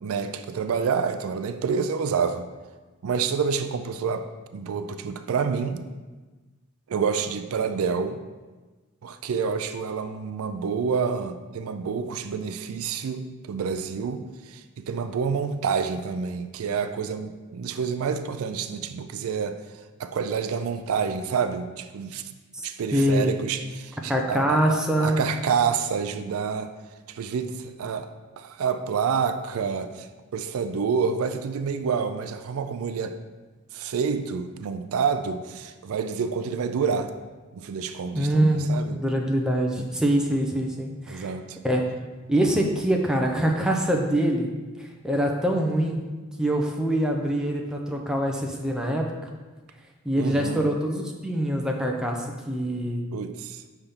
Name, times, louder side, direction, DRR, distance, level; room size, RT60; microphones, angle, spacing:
voice 1, 0.0-2.5 3.0-5.8 6.9-8.2 9.0-19.7 20.0-22.3 22.6-26.7 27.1-33.1 33.7-37.1 37.5-39.0 41.1-41.6 50.2-50.7 53.1-53.6, right 6 dB, 75° right, 10 dB, 0.4 m, -28 dB
voice 2, 22.9-23.3 24.1-25.2 38.1-41.3 41.6-41.8 42.3-44.5 44.8-46.0 46.4-49.1 50.0-53.1, right 1 dB, 5° right, 0 dB, 0.5 m, -24 dB
5.8 x 3.4 x 5.4 m, 1.3 s
head